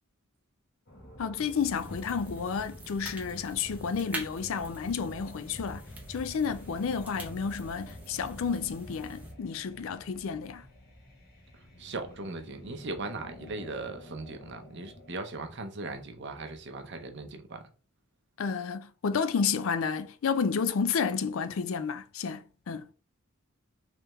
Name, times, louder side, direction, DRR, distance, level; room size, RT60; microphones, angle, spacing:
sound 1, 0.9-15.2, left 1 dB, 50° left, 1.2 m, -51 dB
voice 1, 1.2-5.8 6.1-10.7 18.4-22.9, left 6 dB, 65° left, 0.4 m, -31 dB
sound 2, 1.4-9.3, right 1 dB, 5° right, 0.7 m, -44 dB
voice 2, 11.8-17.6, right 3 dB, 55° right, 0.7 m, -38 dB
3.4 x 3.3 x 3.0 m
head